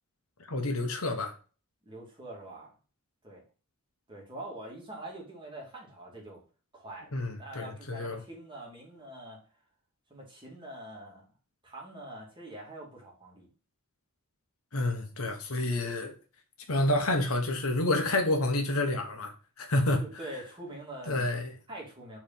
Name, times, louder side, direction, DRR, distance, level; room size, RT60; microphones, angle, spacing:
voice 1, 0.5-1.3 7.1-8.2 14.7-16.1 16.7-20.0 21.1-21.5, left 1 dB, 70° left, 1.3 m, -29 dB
voice 2, 1.8-2.7 3.2-3.4 4.1-6.4 6.7-9.4 10.1-11.2 11.6-13.5 20.0-21.3 21.7-22.2, right 1 dB, 20° right, 2.4 m, -44 dB
4.9 x 4.3 x 5.6 m
head